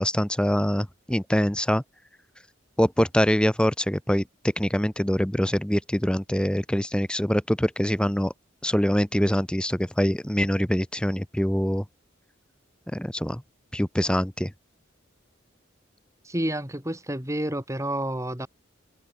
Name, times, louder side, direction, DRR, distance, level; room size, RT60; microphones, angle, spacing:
voice 1, 0.0-1.8 2.8-4.2 4.6-8.3 8.6-11.8 12.9-13.4 13.7-14.5, equal, 5° left, 1.0 m, -24 dB
voice 2, 16.2-18.5, right 1 dB, 15° right, 6.0 m, -29 dB
head